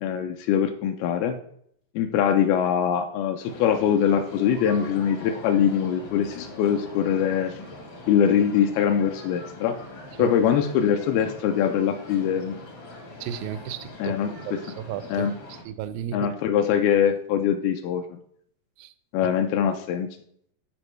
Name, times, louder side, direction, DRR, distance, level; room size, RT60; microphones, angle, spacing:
voice 1, 0.0-1.4 2.0-7.6 8.1-9.8 10.2-12.6 14.0-14.3 15.1-15.3 16.1-18.0 19.1-20.1, left 8 dB, 85° left, 5 dB, 2.4 m, -23 dB
sound 1, 3.4-15.6, left 2 dB, 65° left, 1.1 m, -42 dB
voice 2, 13.2-14.2 14.5-16.2 18.8-18.9, right 9 dB, 80° right, 13 dB, 2.1 m, -34 dB
11.5 x 4.4 x 3.2 m, 0.67 s
omnidirectional pair, 4.3 m